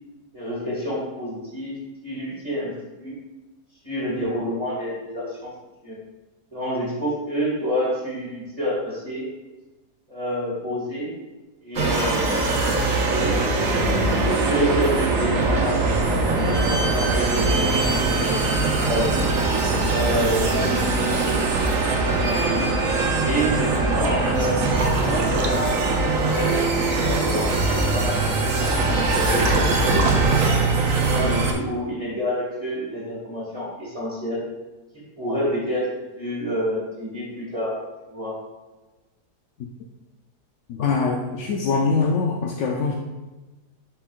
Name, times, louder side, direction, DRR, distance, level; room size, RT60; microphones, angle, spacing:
voice 1, 0.3-1.8 2.0-2.7 3.0-3.2 3.8-5.5 5.8-6.0 6.5-9.2 10.1-11.1 11.6-12.5 12.8-13.4 14.2-18.4 18.8-19.3 19.8-20.7 20.9-21.4 22.2-22.7 23.1-25.8 26.2-30.4 31.0-34.4 35.2-35.9 36.2-37.8 38.1-38.4, equal, 20° right, -7 dB, 2.0 m, -28 dB
sound 1, 11.8-31.5, right 3 dB, 60° right, 1.3 m, -21 dB
Liquid, 23.9-31.6, right 3 dB, 75° right, 1.4 m, -34 dB
voice 2, 40.7-42.9, left 4 dB, 65° left, 1 dB, 0.8 m, -23 dB
10.5 x 4.5 x 2.4 m, 1.1 s
omnidirectional pair, 1.7 m